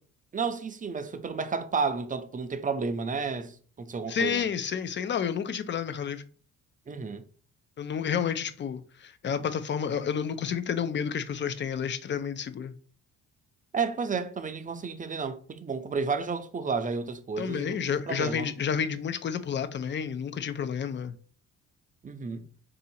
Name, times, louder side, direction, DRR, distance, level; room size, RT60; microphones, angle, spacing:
voice 1, 0.3-4.4 6.9-7.2 13.7-17.8 18.1-18.5 22.0-22.5, right 5 dB, 25° right, 0.5 m, -31 dB
voice 2, 4.1-6.2 7.8-12.7 17.4-21.1, left 7 dB, 40° left, 0.5 m, -30 dB
3.7 x 2.7 x 4.2 m
cardioid pair, 90°, 30 cm